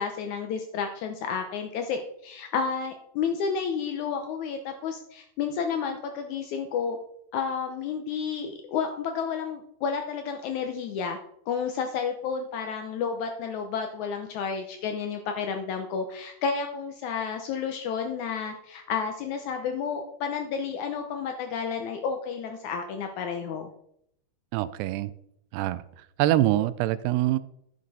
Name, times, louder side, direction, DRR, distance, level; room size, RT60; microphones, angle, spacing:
voice 1, 0.0-7.0 7.3-11.2 11.5-23.7, left 6 dB, 85° left, 5 dB, 1.6 m, -31 dB
voice 2, 24.5-25.1 25.5-25.8 26.2-27.4, right 14 dB, 85° right, 15 dB, 2.6 m, -24 dB
14.5 x 6.8 x 4.1 m, 0.74 s
omnidirectional pair, 4.6 m